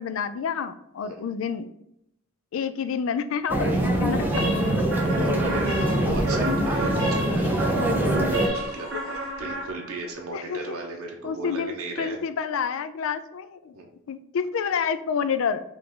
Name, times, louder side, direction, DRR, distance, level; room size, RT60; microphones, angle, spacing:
voice 1, 0.0-1.7 2.5-4.7 10.3-10.8 11.2-13.8 14.1-15.6, left 6 dB, 65° left, 12 dB, 0.3 m, -29 dB
sound 1, 3.5-8.5, right 1 dB, 10° right, 0.6 m, -24 dB
sound 2, 4.3-10.2, right 1 dB, 60° right, 1.4 m, -31 dB
Human voice, 5.1-7.1 8.0-9.7, left 1 dB, 45° left, 0.9 m, -40 dB
voice 2, 5.1-7.5 8.6-8.9 9.2-12.2 13.7-13.9, right 2 dB, 85° right, 0 dB, 0.8 m, -36 dB
4.8 x 2.5 x 3.8 m, 0.79 s
head